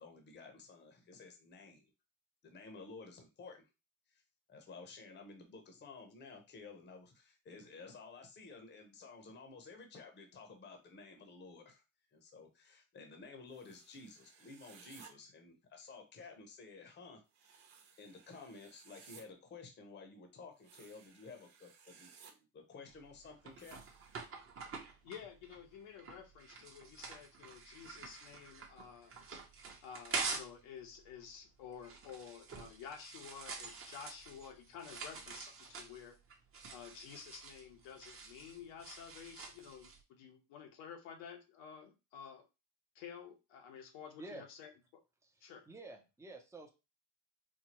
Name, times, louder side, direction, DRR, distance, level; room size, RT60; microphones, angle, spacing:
voice 1, 0.0-1.9 2.4-3.6 4.1-4.2 4.5-11.8 12.1-17.6 18.0-23.8, left 4 dB, 25° left, 4 dB, 0.7 m, -53 dB
sound 1, 13.5-15.1 17.3-19.2 20.6-22.3 23.6-24.3, right 7 dB, 80° right, 1.1 m, -60 dB
sound 2, 22.9-30.6 30.9-40.0, right 4 dB, 30° right, 0.8 m, -46 dB
voice 2, 24.6-29.1 29.8-36.2 36.7-42.4 42.9-44.7 45.4-45.6, left 7 dB, 85° left, 2 dB, 1.0 m, -51 dB
voice 3, 45.2-46.7, right 2 dB, 5° right, 3 dB, 0.5 m, -50 dB
4.4 x 2.3 x 2.9 m, 0.27 s
cardioid pair, 140°, 46 cm